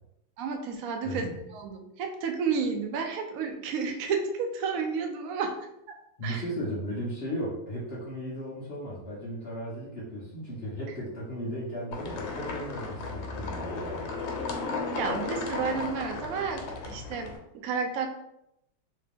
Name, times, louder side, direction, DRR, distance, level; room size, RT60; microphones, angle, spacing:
voice 1, 0.4-5.6 5.9-6.0 6.2-6.4 14.9-18.1, right 5 dB, 75° right, 4 dB, 0.7 m, -31 dB
voice 2, 1.0-1.4 6.2-14.1, equal, 45° left, -6 dB, 0.8 m, -36 dB
sound 1, 11.9-17.4, left 4 dB, 85° left, 1.5 m, -35 dB
3.2 x 2.8 x 3.4 m, 0.80 s
omnidirectional pair, 2.1 m